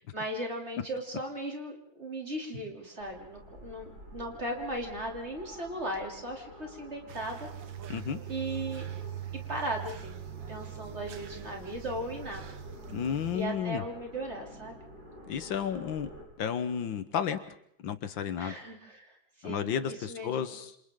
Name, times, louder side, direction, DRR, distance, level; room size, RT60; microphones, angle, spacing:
voice 1, 0.0-7.5 8.3-8.9 9.5-10.2 10.5-12.5 13.3-14.7 18.4-20.6, right 1 dB, 35° right, 1 dB, 3.4 m, -37 dB
sound 1, 3.0-16.2, left 1 dB, 65° right, 6.8 m, -50 dB
sound 2, 7.1-13.4, right 11 dB, 80° right, 1.8 m, -42 dB
voice 2, 12.9-13.8 15.3-16.1 16.4-17.4 17.8-18.5 19.4-20.7, left 8 dB, 75° left, 10 dB, 1.9 m, -32 dB
27.5 x 27.5 x 3.8 m, 0.70 s
omnidirectional pair, 2.1 m